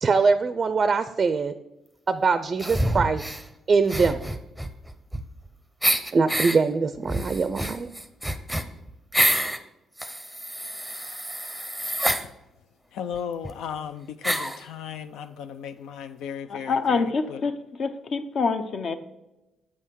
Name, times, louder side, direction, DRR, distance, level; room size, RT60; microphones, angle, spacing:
voice 1, 0.0-1.5 2.1-3.2 3.7-4.3 6.1-7.9, right 4 dB, 40° right, 11 dB, 0.4 m, -22 dB
sound 1, 2.6-3.4 3.9-5.5 5.8-6.6 7.1-9.6 10.0-12.2 13.1-13.2 13.4-13.5 14.2-14.6, right 1 dB, ahead, 0.7 m, -27 dB
voice 2, 12.9-17.4, left 8 dB, 85° left, 10 dB, 0.4 m, -36 dB
voice 3, 16.5-17.5 17.8-19.0, left 4 dB, 55° left, 9 dB, 0.7 m, -26 dB
7.7 x 5.5 x 4.6 m, 0.96 s
cardioid pair, 90°, 0 cm